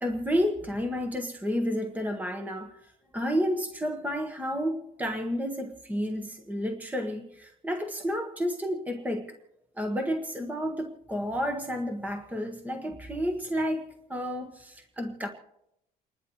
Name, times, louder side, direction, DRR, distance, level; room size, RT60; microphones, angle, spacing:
voice 1, 0.0-9.3 9.8-13.8 14.1-15.3, equal, 10° right, 3 dB, 1.6 m, -31 dB
29.5 x 11.5 x 3.2 m, 0.81 s
cardioid pair, 110°, 17 cm